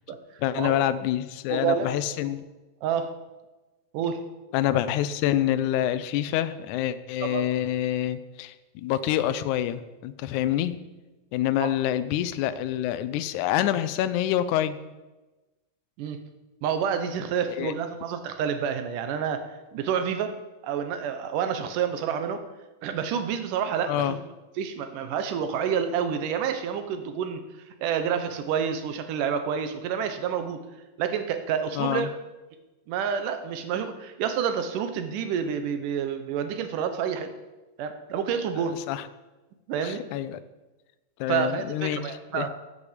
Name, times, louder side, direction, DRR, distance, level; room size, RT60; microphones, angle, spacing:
voice 1, 0.4-2.4 4.5-10.8 11.3-14.8 17.5-17.7 23.9-24.2 31.8-32.1 38.7-39.1 39.8-40.4 41.2-42.5, left 12 dB, 75° left, 13 dB, 1.9 m, -27 dB
voice 2, 1.5-2.0 2.8-3.1 3.9-4.2 7.2-7.5 11.6-11.7 16.0-16.2 16.6-20.4 20.6-22.4 22.8-24.2 24.6-27.4 27.8-30.6 31.0-32.1 32.9-37.3 37.8-38.8 39.7-40.0 41.3-42.5, right 7 dB, 75° right, 8 dB, 2.4 m, -28 dB
15.5 x 8.3 x 5.1 m, 1.1 s
omnidirectional pair, 3.9 m